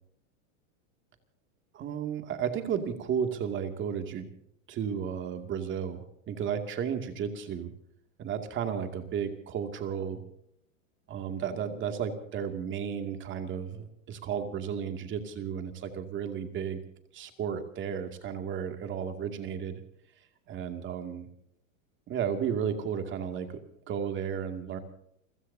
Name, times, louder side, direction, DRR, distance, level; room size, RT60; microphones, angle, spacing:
voice 1, 1.7-4.3 4.7-7.7 8.2-10.2 11.1-16.8 17.1-19.8 20.5-21.3 22.1-23.6 23.9-24.8, right 7 dB, 30° right, 6 dB, 2.4 m, -33 dB
30.0 x 16.0 x 2.8 m, 0.72 s
supercardioid pair, 140°, 40 cm